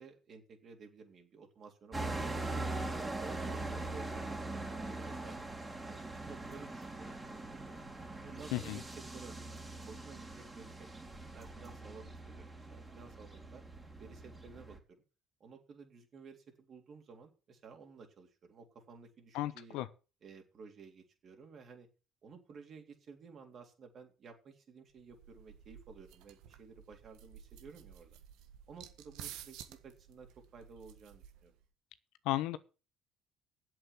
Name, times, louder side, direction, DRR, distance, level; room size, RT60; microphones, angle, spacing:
voice 1, 0.0-2.6 3.2-5.4 5.9-7.1 8.2-9.5 9.9-10.9 11.3-13.6 14.0-15.0 15.4-19.8 20.2-21.9 22.2-28.2 28.7-31.5, right 5 dB, 45° right, 3.5 m, -54 dB
sound 1, 1.9-14.8, right 2 dB, 15° right, 3.0 m, -42 dB
voice 2, 19.3-19.9 32.2-32.6, left 15 dB, 75° left, 1.0 m, -34 dB
sound 2, 25.0-31.6, right 10 dB, 75° right, 1.5 m, -53 dB
8.1 x 7.8 x 8.6 m
supercardioid pair, 95°, 0 cm